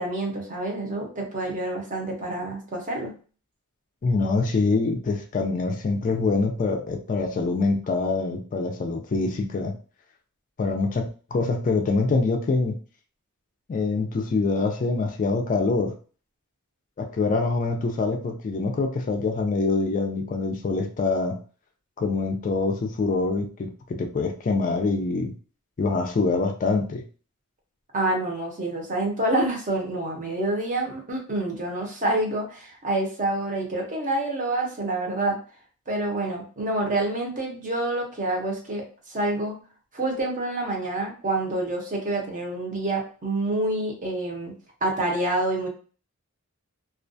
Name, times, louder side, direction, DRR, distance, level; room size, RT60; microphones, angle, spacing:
voice 1, 0.0-3.1 27.9-35.4 35.9-39.6 39.9-44.5 44.8-45.7, right 2 dB, 35° right, 1 dB, 0.7 m, -27 dB
voice 2, 4.0-9.7 10.6-12.8 13.7-15.9 17.0-21.4 22.0-25.3 25.8-27.0, left 3 dB, 35° left, 4 dB, 0.3 m, -25 dB
2.4 x 2.2 x 2.6 m, 0.38 s
head